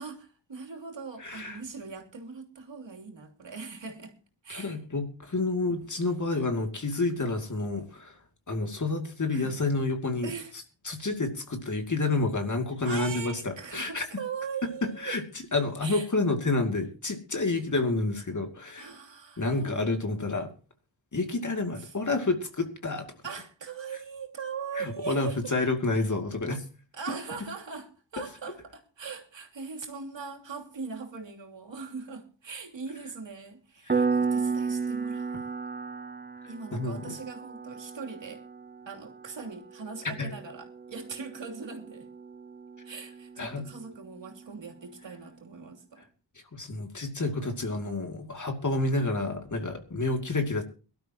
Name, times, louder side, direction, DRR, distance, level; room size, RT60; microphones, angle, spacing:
voice 1, 0.0-4.2 4.4-4.8 9.3-9.6 10.2-10.5 12.8-15.2 15.8-16.1 18.8-19.9 21.8-21.9 23.2-25.5 26.9-35.5 36.5-38.4 38.9-42.1 42.8-46.0, right 5 dB, 85° right, 3.0 m, -40 dB
voice 2, 1.2-1.6 4.5-8.2 8.5-10.3 10.8-14.0 14.6-15.2 15.5-18.9 19.4-20.5 21.1-23.1 24.8-26.6 33.9-34.1 36.7-37.1 40.2-40.3 43.4-43.7 46.5-50.6, left 2 dB, 45° left, 2.5 m, -29 dB
Piano, 33.9-44.3, right 4 dB, 20° right, 0.5 m, -34 dB
23.0 x 12.0 x 2.9 m
wide cardioid pair, 100°, 43 cm